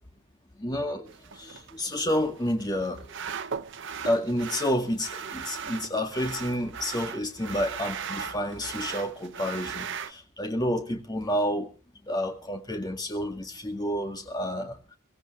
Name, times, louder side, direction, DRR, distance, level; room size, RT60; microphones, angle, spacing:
voice 1, 0.6-1.1 1.4-3.1 4.0-11.7 12.1-14.8, equal, 20° left, 2.0 m, -29 dB
sound 1, 1.1-10.1, right 6 dB, 55° right, 0.9 m, -38 dB
24.0 x 15.5 x 3.1 m
head